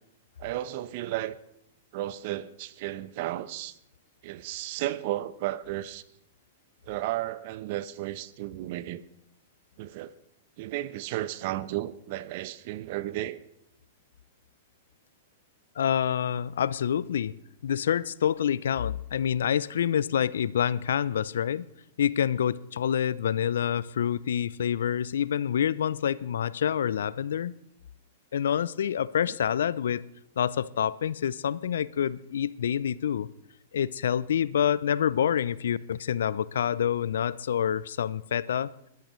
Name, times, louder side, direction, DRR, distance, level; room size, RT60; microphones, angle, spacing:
voice 1, 0.4-1.4 1.9-3.7 4.2-6.0 6.9-9.0 9.8-10.1 10.6-13.4, right 15 dB, 55° right, 0.8 m, -33 dB
voice 2, 15.8-17.3 17.6-21.7 22.0-27.5 28.3-30.0 30.4-33.3 33.7-38.7, left 9 dB, 75° left, 0.5 m, -27 dB
21.0 x 13.5 x 3.2 m
hypercardioid pair, 110°, 0 cm